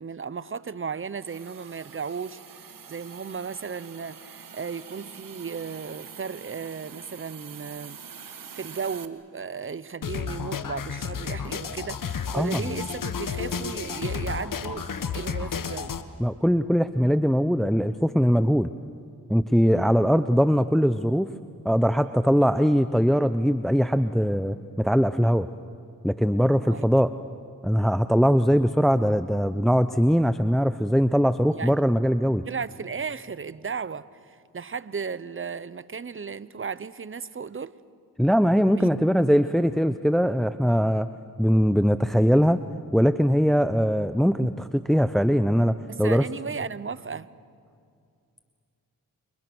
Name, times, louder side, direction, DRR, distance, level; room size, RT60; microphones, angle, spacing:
voice 1, 0.0-8.0 8.5-14.9 15.1-16.0 19.8-20.2 26.6-26.9 31.5-31.8 32.4-34.0 34.5-37.7 38.7-38.8 45.9-47.3, right 5 dB, 35° right, 17 dB, 0.9 m, -35 dB
Hiss, 1.2-9.1, right 7 dB, 70° right, 1.6 m, -45 dB
sound 1, 10.0-16.0, left 6 dB, 65° left, 1.4 m, -32 dB
voice 2, 16.2-18.7 19.3-21.3 21.6-25.5 26.0-27.1 27.6-32.4 38.2-41.1 41.4-42.6 42.9-46.2, equal, ahead, 12 dB, 0.7 m, -21 dB
29.0 x 27.5 x 6.3 m, 2.3 s
cardioid pair, 50°, 35 cm